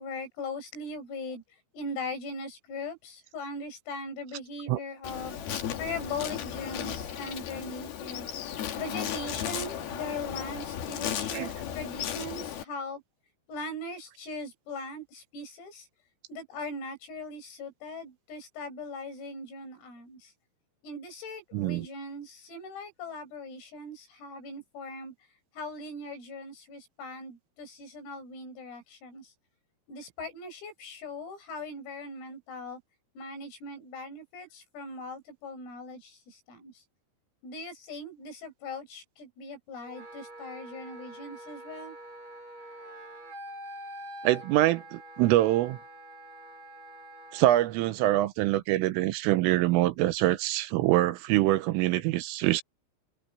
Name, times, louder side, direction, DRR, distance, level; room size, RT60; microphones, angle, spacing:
voice 1, 0.0-1.4 1.7-5.4 5.8-8.3 8.7-13.0 13.5-15.8 16.3-20.3 20.8-25.1 25.6-29.3 29.9-32.8 33.2-36.7 37.4-42.0, left 2 dB, 85° left, 10.0 m, -40 dB
Insect, 5.0-12.6, left 9 dB, 55° left, 3.5 m, -35 dB
voice 2, 21.5-21.9 44.2-45.8 47.3-52.6, right 15 dB, 90° right, 3.5 m, -24 dB
Wind instrument woodwind instrument, 39.8-47.5, right 1 dB, 65° right, 9.0 m, -45 dB
omnidirectional pair, 5.9 m